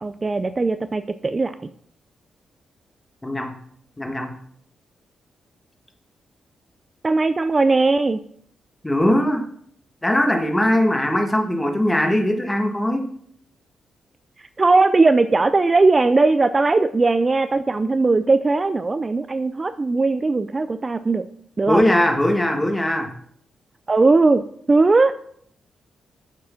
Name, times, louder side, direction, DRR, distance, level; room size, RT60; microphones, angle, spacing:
voice 1, 0.0-1.5 7.0-8.2 14.6-21.3 21.6-21.8 23.9-24.4 24.7-25.1, right 3 dB, 30° right, 11 dB, 0.5 m, -18 dB
voice 2, 3.2-3.5 4.0-4.3 8.8-9.5 10.0-13.1 21.7-23.1, left 1 dB, 15° left, 4 dB, 1.6 m, -20 dB
7.5 x 6.0 x 5.7 m, 0.63 s
cardioid pair, 75°, 0 cm